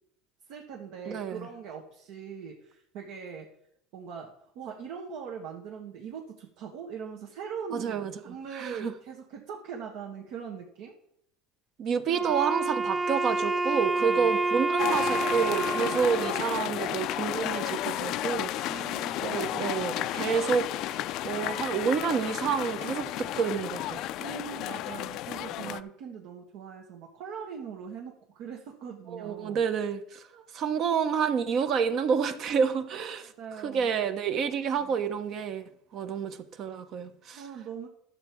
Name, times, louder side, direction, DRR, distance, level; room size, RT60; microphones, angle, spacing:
voice 1, 0.5-3.5 3.9-11.0 12.1-12.3 14.0-14.3 18.7-19.2 24.2-29.6 30.3-30.4 32.6-32.7 33.4-33.9 34.8-35.0 37.3-37.9, right 7 dB, 65° right, 1.4 m, -41 dB
voice 2, 1.1-1.5 7.7-8.9 11.8-24.1 25.6-25.8 29.1-30.2 30.5-33.3 33.6-35.6 35.9-37.4, right 6 dB, 45° right, 1.0 m, -29 dB
Wind instrument woodwind instrument, 12.1-17.3, right 2 dB, 10° right, 1.0 m, -29 dB
sound 1, 14.8-25.8, left 14 dB, 55° left, 0.4 m, -32 dB
11.5 x 7.1 x 4.6 m
supercardioid pair, 135°, 0 cm